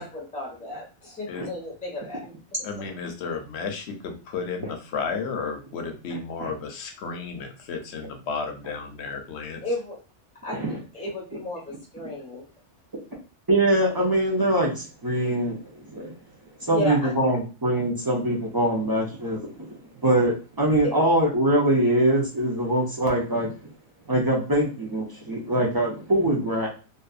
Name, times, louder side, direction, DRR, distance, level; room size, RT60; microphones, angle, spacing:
voice 1, 0.0-2.3 9.6-10.0 10.4-12.4 16.7-17.1 20.8-21.0, left 1 dB, 5° left, -4 dB, 0.9 m, -33 dB
voice 2, 2.6-9.6, left 5 dB, 70° left, 5 dB, 0.8 m, -33 dB
voice 3, 6.1-6.5 10.5-10.8 13.5-16.1 16.6-23.5 24.1-26.7, right 1 dB, 35° right, -3 dB, 0.3 m, -23 dB
2.6 x 2.4 x 2.3 m, 0.35 s
omnidirectional pair, 1.2 m